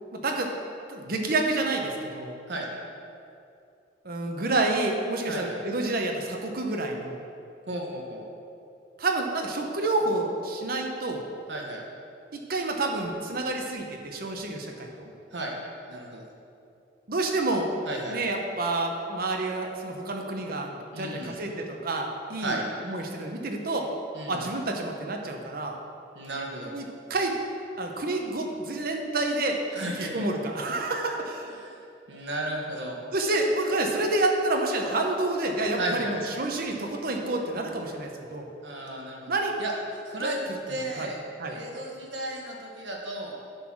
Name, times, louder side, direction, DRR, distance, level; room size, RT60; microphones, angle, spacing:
voice 1, 0.1-0.5 0.9-2.4 4.0-7.2 9.0-11.3 12.3-15.1 17.1-17.7 18.1-22.6 22.8-23.9 24.3-25.8 26.7-27.4 27.8-29.6 30.1-31.6 33.1-38.5 39.3-39.6 40.2-40.4 41.0-41.1 41.4-41.5, right 2 dB, 55° right, 2 dB, 0.9 m, -29 dB
voice 2, 5.3-5.6 7.7-8.3 11.5-11.8 15.3-15.5 15.9-16.3 17.8-18.2 20.9-21.3 22.4-22.6 24.1-24.4 26.1-26.7 29.7-30.2 31.6-31.7 32.1-33.0 35.8-36.3 38.6-39.3 39.6-39.7 40.0-40.4 40.7-41.2 41.5-43.3, right 1 dB, 75° right, -1 dB, 1.4 m, -34 dB
10.0 x 4.0 x 6.1 m, 2.6 s
head